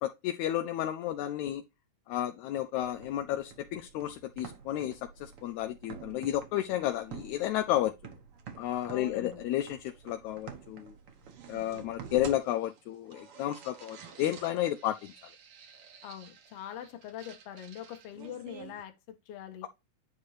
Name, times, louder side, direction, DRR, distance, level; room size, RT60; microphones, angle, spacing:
voice 1, 0.0-1.6 2.1-7.9 8.6-10.9 11.5-15.1, left 12 dB, 80° left, 1.7 m, -32 dB
sound 1, 2.8-18.8, right 7 dB, 55° right, 1.7 m, -49 dB
voice 2, 8.9-9.4 16.0-19.7, left 10 dB, 60° left, 1.8 m, -43 dB
9.6 x 4.2 x 3.1 m
omnidirectional pair, 3.8 m